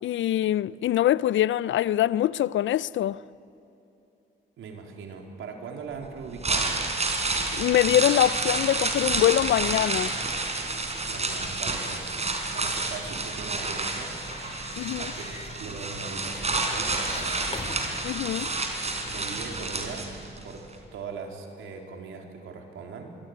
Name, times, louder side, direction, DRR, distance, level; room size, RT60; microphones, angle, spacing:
voice 1, 0.0-3.2 7.6-10.1 14.8-15.1 18.0-18.5, left 12 dB, 70° left, 0.5 m, -24 dB
voice 2, 4.6-6.8 11.1-12.1 12.5-14.1 15.0-17.6 19.0-20.1 20.4-20.6 20.9-23.1, right 5 dB, 80° right, 3.8 m, -40 dB
sound 1, 6.2-20.4 20.7-20.8, right 3 dB, 35° right, 4.6 m, -29 dB
sound 2, 13.7-20.2, left 2 dB, 30° left, 3.9 m, -43 dB
25.0 x 23.0 x 9.5 m
cardioid pair, 75°, 20 cm